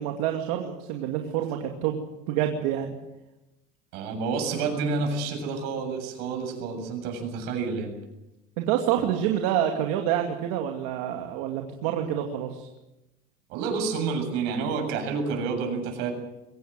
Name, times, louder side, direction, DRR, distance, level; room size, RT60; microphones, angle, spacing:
voice 1, 0.0-2.0 2.3-3.0 8.6-12.7, right 10 dB, 80° right, 3 dB, 2.5 m, -27 dB
voice 2, 3.9-8.0 13.5-16.1, right 4 dB, 65° right, 4 dB, 7.6 m, -29 dB
23.0 x 18.0 x 7.6 m, 0.95 s
cardioid pair, 170°, 19 cm